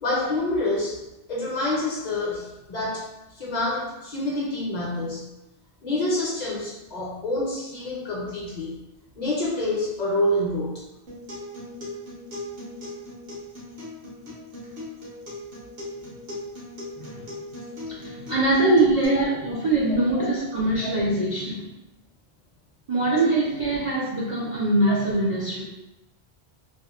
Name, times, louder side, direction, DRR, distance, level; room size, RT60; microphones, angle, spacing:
voice 1, 0.0-1.0 1.3-5.3 5.8-8.8 9.2-10.7 19.2-19.3 20.1-20.3 20.8-20.9 24.9-25.0, left 1 dB, 50° left, -4 dB, 0.6 m, -27 dB
Acoustic guitar, 11.1-19.1, left 1 dB, 75° right, 1.0 m, -38 dB
voice 2, 17.9-21.7 22.9-25.6, right 2 dB, 55° right, -7 dB, 0.3 m, -23 dB
2.7 x 2.0 x 2.3 m, 0.97 s
omnidirectional pair, 1.0 m